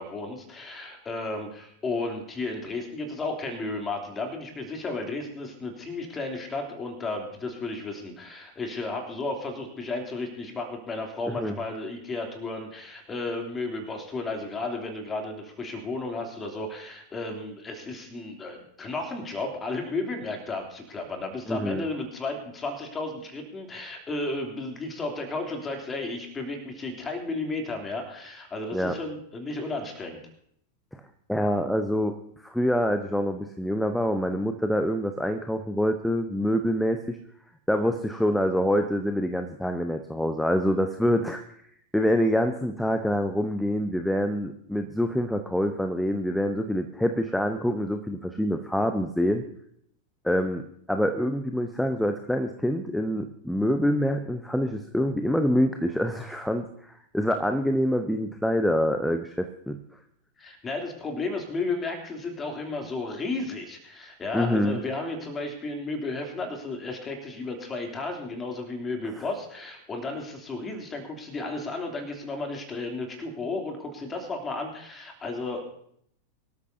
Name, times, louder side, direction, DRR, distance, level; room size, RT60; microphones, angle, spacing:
voice 1, 0.0-30.2 60.4-75.6, left 3 dB, 20° left, 2 dB, 3.0 m, -33 dB
voice 2, 21.5-21.9 28.7-29.0 31.3-32.1 32.4-37.2 37.7-41.4 41.9-49.4 50.2-50.6 50.9-59.8 64.3-64.8, equal, ahead, 7 dB, 0.8 m, -26 dB
24.0 x 13.0 x 2.7 m, 0.69 s
figure-of-eight pair, 90°, 0 cm